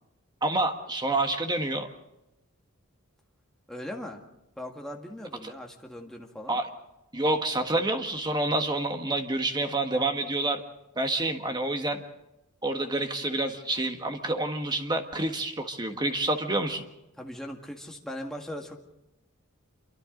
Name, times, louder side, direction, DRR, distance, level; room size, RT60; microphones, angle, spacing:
voice 1, 0.4-1.9 5.4-5.5 6.5-6.7 7.1-10.6 11.0-12.0 12.6-16.8, right 2 dB, 20° right, 5 dB, 1.5 m, -28 dB
voice 2, 3.7-4.2 4.6-6.6 17.2-18.8, left 1 dB, ahead, 1 dB, 1.9 m, -39 dB
27.5 x 24.0 x 3.9 m, 0.91 s
head